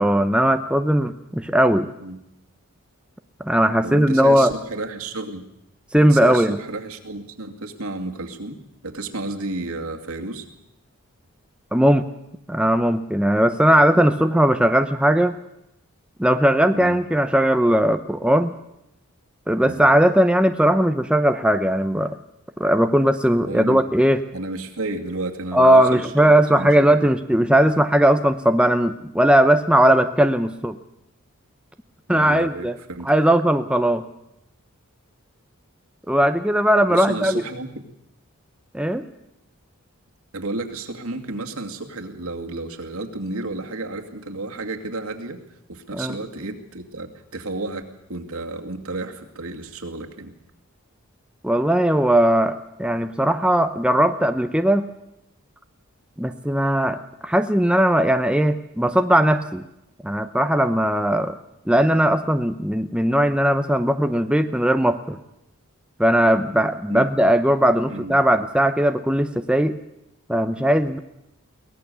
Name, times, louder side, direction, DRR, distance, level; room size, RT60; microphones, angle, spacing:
voice 1, 0.0-1.9 3.4-4.5 5.9-6.6 11.7-12.1 12.5-15.4 16.2-18.5 19.5-22.2 22.6-24.2 25.5-30.7 32.1-32.7 33.1-34.0 36.1-37.4 38.7-39.1 45.9-46.1 51.4-54.9 56.2-59.6 60.0-61.4 61.7-65.2 66.0-69.8 70.3-71.0, right 1 dB, 5° right, 8 dB, 0.7 m, -18 dB
voice 2, 3.8-5.4 5.9-8.6 8.8-10.5 16.7-17.0 19.6-19.9 23.4-23.8 24.3-26.9 32.1-33.1 36.9-37.7 40.3-45.4 45.7-47.8 48.1-50.3 66.9-67.1 67.9-68.2, right 2 dB, 80° right, 3 dB, 2.4 m, -32 dB
22.5 x 19.0 x 6.9 m, 0.83 s
head